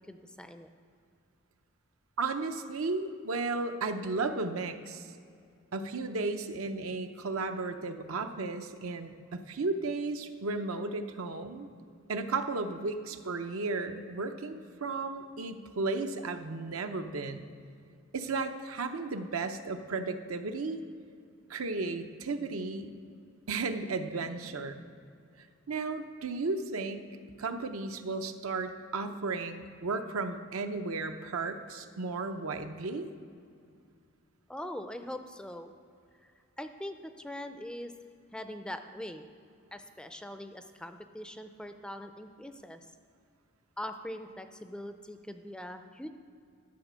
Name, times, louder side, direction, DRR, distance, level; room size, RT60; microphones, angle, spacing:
voice 1, 0.1-0.7 34.5-35.7 36.6-37.9 38.3-39.3 39.7-42.9 43.8-46.1, left 1 dB, 5° left, 8 dB, 0.4 m, -42 dB
voice 2, 2.2-5.1 5.7-11.7 12.1-17.5 18.1-20.8 21.5-22.9 23.5-24.8 25.7-27.1 27.4-33.1, right 3 dB, 80° right, 7 dB, 0.7 m, -34 dB
12.5 x 6.6 x 6.2 m, 2.4 s
head